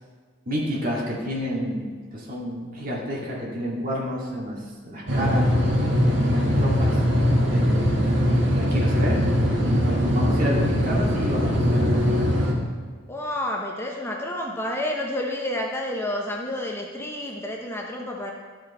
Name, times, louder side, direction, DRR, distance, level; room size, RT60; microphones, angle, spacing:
voice 1, 0.5-5.5 6.2-7.0 7.5-7.9 8.5-9.3 9.6-12.2, equal, 45° right, -3 dB, 2.0 m, -30 dB
sound 1, 5.1-12.5, equal, 80° right, 1.5 m, -21 dB
voice 2, 13.1-18.3, left 1 dB, 15° left, 0 dB, 0.6 m, -29 dB
12.0 x 4.9 x 4.2 m, 1.5 s
head